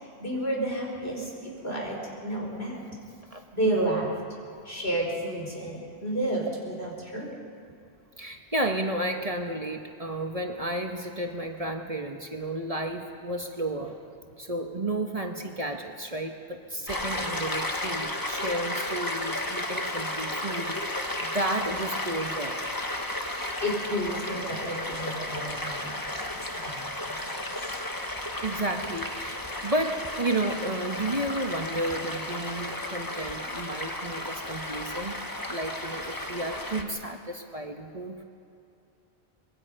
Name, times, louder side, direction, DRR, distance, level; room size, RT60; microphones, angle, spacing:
voice 1, 0.2-2.8 3.5-4.1 4.6-7.3 23.3-25.9 26.5-27.2, right 1 dB, 70° left, -1 dB, 5.0 m, -31 dB
voice 2, 3.3-3.9 8.2-22.6 26.4-26.8 28.4-35.2 35.5-38.2, right 1 dB, 35° right, 4 dB, 1.3 m, -32 dB
Stream, 16.9-36.8, left 1 dB, 20° left, 1.5 m, -33 dB
25.0 x 21.5 x 5.6 m, 2.6 s
omnidirectional pair, 1.1 m